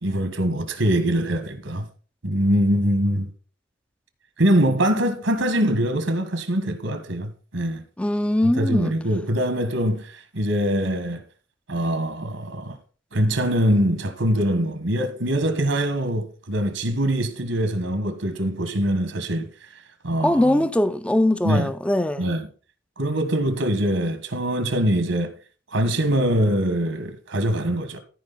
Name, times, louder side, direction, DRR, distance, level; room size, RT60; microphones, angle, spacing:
voice 1, 0.0-1.9 2.2-3.3 4.4-7.8 8.4-11.2 11.7-12.8 13.1-19.5 20.0-20.7 21.4-21.7 22.2-22.5 23.0-25.3 25.7-28.0, right 1 dB, 75° right, 1.5 m, -23 dB
voice 2, 8.0-8.9 20.2-22.2, left 1 dB, 5° left, 0.4 m, -21 dB
14.0 x 4.9 x 4.0 m
head